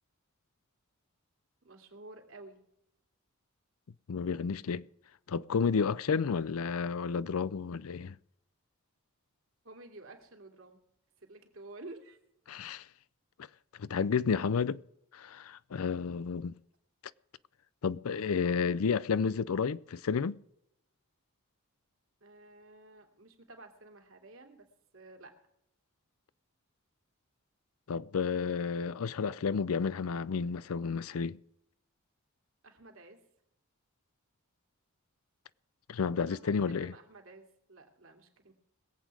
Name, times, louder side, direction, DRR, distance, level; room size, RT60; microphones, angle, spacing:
voice 1, 1.6-2.6 9.6-10.8 11.2-12.2 22.2-24.7 24.9-25.3 32.6-33.2 36.3-38.5, right 2 dB, 65° right, 2.7 m, -51 dB
voice 2, 4.1-4.8 5.3-8.1 12.5-12.8 13.8-14.8 15.1-16.6 17.8-20.4 27.9-31.4 35.9-36.9, left 5 dB, 75° left, 0.5 m, -31 dB
21.5 x 8.4 x 4.8 m
head